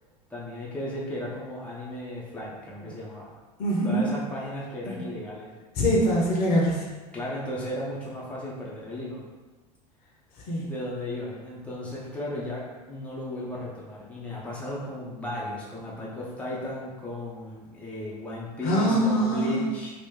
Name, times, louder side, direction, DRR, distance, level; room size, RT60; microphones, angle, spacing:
voice 1, 0.3-3.3 3.8-5.5 7.1-9.2 10.7-19.9, left 1 dB, 5° left, -6 dB, 0.8 m, -35 dB
voice 2, 3.6-4.1 4.8-5.0 5.7-6.9 10.5-10.7 18.6-19.7, equal, 45° left, -3 dB, 1.0 m, -24 dB
2.9 x 2.6 x 3.7 m, 1.3 s
figure-of-eight pair, 75°, 21 cm